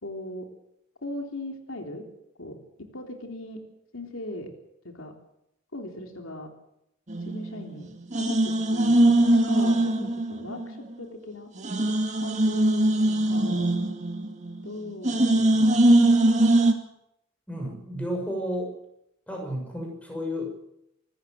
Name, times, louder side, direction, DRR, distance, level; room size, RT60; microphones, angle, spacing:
voice 1, 0.0-0.5 1.0-2.0 2.4-3.6 3.9-4.5 4.8-5.1 5.7-6.5 7.3-7.9 8.2-11.5 12.2-13.7 14.6-15.7, left 1 dB, 90° left, 3 dB, 3.5 m, -38 dB
sound 1, 7.1-7.8 8.1-10.7 11.0-11.1 11.6-14.7 15.0-16.7, right 1 dB, 35° right, 2.2 m, -21 dB
voice 2, 17.5-18.7 19.3-20.5, equal, 5° left, 1 dB, 6.3 m, -32 dB
25.0 x 14.0 x 7.8 m, 0.81 s
head